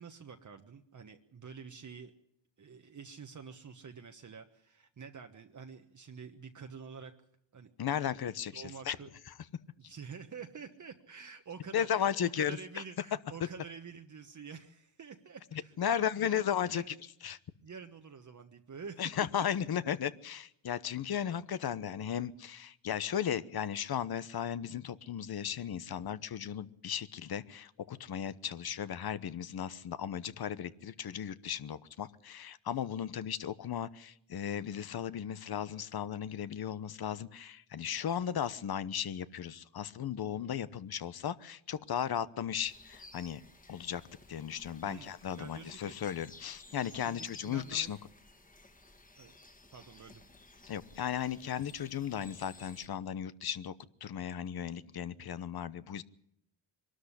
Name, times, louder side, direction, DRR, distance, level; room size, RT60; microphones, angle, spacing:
voice 1, 0.0-2.1 2.6-7.1 7.5-7.7 8.5-9.1 9.8-16.4 16.7-16.9 17.6-19.1 19.6-19.7 21.2-21.3 44.8-46.0 47.0-47.9 49.2-49.4 49.7-50.2, right 6 dB, 35° right, 5 dB, 1.3 m, -48 dB
voice 2, 7.8-9.0 11.7-12.6 15.5-16.9 17.2-17.4 19.0-43.4 43.7-44.0 44.3-48.0 50.7-53.7 54.0-56.0, left 9 dB, 45° left, 16 dB, 1.0 m, -35 dB
sound 1, 42.6-52.9, left 2 dB, 15° left, 2.0 m, -56 dB
22.5 x 13.0 x 10.0 m, 0.76 s
cardioid pair, 90°, 50 cm